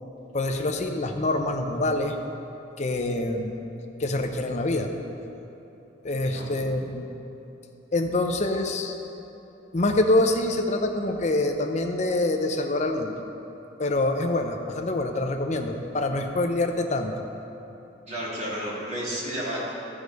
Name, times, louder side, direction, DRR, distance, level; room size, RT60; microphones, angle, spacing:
voice 1, 0.3-2.2 2.8-3.5 4.0-4.9 6.0-7.1 7.9-9.0 9.7-13.2 13.8-17.2, left 2 dB, 40° left, 4 dB, 0.6 m, -25 dB
voice 2, 6.2-6.5 18.1-19.7, equal, 35° right, -6 dB, 2.2 m, -32 dB
13.0 x 4.9 x 5.2 m, 3.0 s
head